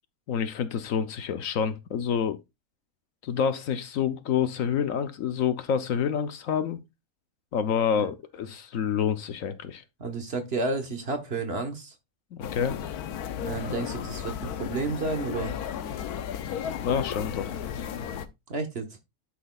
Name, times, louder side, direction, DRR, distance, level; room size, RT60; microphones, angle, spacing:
voice 1, 0.3-2.4 3.2-6.8 7.5-9.8 12.3-12.8 16.8-17.5, left 7 dB, 65° left, 1.1 m, -28 dB
voice 2, 10.0-11.9 13.4-15.5 18.5-18.9, right 3 dB, 45° right, 1.3 m, -31 dB
sound 1, 12.4-18.3, left 9 dB, 90° left, 1.2 m, -34 dB
11.5 x 6.1 x 2.3 m
omnidirectional pair, 1.6 m